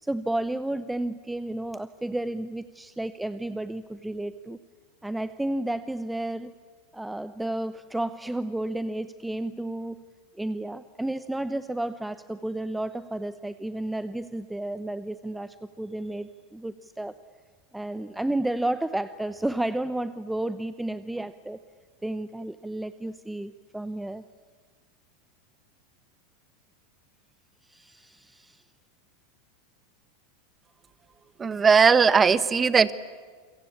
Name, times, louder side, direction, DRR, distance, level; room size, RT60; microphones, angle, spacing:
voice 1, 0.0-4.6 5.0-6.5 6.9-10.0 10.4-17.1 17.7-21.6 22.0-24.2 27.7-28.6, right 1 dB, 5° right, 13 dB, 0.9 m, -32 dB
voice 2, 31.4-32.9, right 5 dB, 20° right, 15 dB, 1.3 m, -19 dB
28.0 x 23.5 x 8.6 m, 1.6 s
hypercardioid pair, 95°, 0 cm